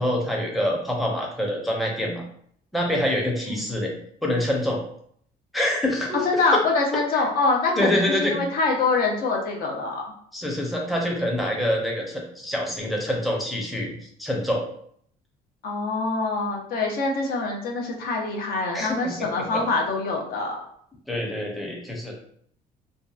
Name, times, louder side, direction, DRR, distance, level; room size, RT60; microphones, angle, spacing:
voice 1, 0.0-2.2 2.7-3.9 4.2-4.8 5.5-6.2 6.5-6.6 7.1-7.2 7.8-8.4 10.3-13.9 14.2-14.7 18.7-19.6 21.1-22.1, left 1 dB, ahead, -1 dB, 0.5 m, -26 dB
voice 2, 6.2-10.1 15.6-20.7, left 3 dB, 60° left, 0 dB, 0.6 m, -25 dB
2.7 x 2.2 x 2.3 m, 0.65 s
cardioid pair, 110°, 17 cm